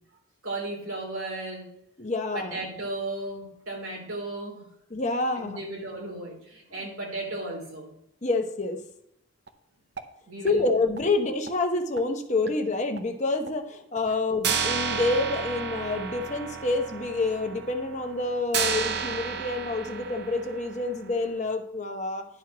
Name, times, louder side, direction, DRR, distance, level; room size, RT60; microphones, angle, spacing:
voice 1, 0.4-1.7 2.3-4.7 5.4-7.9 10.3-10.7, right 2 dB, 90° right, -1 dB, 3.4 m, -35 dB
voice 2, 2.0-2.6 4.9-5.6 8.2-8.8 10.4-22.2, left 3 dB, 35° left, 4 dB, 1.0 m, -28 dB
sound 1, 9.5-9.6 10.0-10.1 10.5-10.6 11.0-11.1 11.5-11.6 12.0-12.1 12.5-12.6 13.0-13.1 13.5-13.6 14.0-14.1 14.4-21.1, right 6 dB, 50° right, 0.7 m, -32 dB
11.0 x 4.5 x 6.0 m, 0.76 s
head